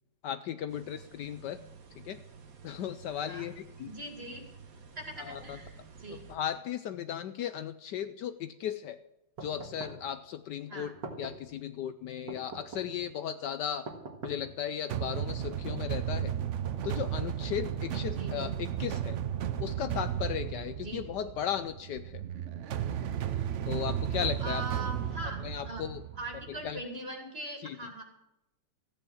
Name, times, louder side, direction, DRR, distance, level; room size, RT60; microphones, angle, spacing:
voice 1, 0.2-1.6 2.0-2.2 2.6-3.9 5.2-5.6 6.1-9.0 9.4-13.9 14.2-16.3 16.8-19.2 19.6-22.2 23.7-24.6 25.4-26.0 26.5-26.8 27.6-27.8, left 9 dB, 70° left, 11 dB, 1.2 m, -36 dB
sound 1, 0.7-6.4, right 6 dB, 50° right, 1.7 m, -52 dB
voice 2, 3.8-4.4 4.9-6.2 10.7-10.9 18.1-18.6 20.8-21.0 24.4-25.8 26.1-28.0, right 2 dB, 30° right, 3 dB, 2.6 m, -41 dB
sound 2, 9.4-10.1 10.8-11.5 12.3-13.0 13.9-14.6 15.3-15.9 16.6-17.5, right 3 dB, 65° right, 2.3 m, -44 dB
sound 3, 14.9-26.8, right 10 dB, 85° right, 0.6 m, -34 dB
14.5 x 9.0 x 7.1 m, 0.89 s
omnidirectional pair, 2.1 m